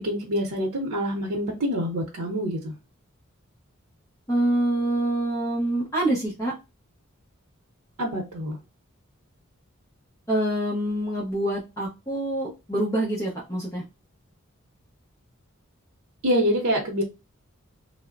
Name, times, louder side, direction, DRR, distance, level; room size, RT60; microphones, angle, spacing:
voice 1, 0.0-2.7 8.0-8.6 16.2-17.0, equal, 90° right, -1 dB, 0.7 m, -26 dB
voice 2, 4.3-6.5 10.3-13.8, right 1 dB, 15° left, -5 dB, 0.6 m, -26 dB
3.1 x 2.0 x 2.4 m, 0.26 s
head